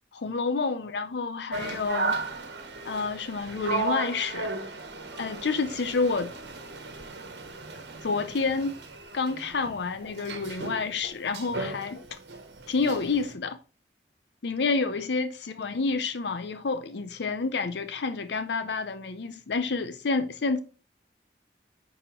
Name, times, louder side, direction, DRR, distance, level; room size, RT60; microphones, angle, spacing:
voice 1, 0.1-2.2 2.8-4.5 5.2-6.3 8.0-8.8 9.1-12.2 12.7-13.6 14.4-20.6, left 4 dB, 75° left, 0.6 m, -29 dB
sound 1, 1.5-13.3, right 3 dB, 85° right, 1.3 m, -35 dB
10.0 x 4.3 x 3.7 m
head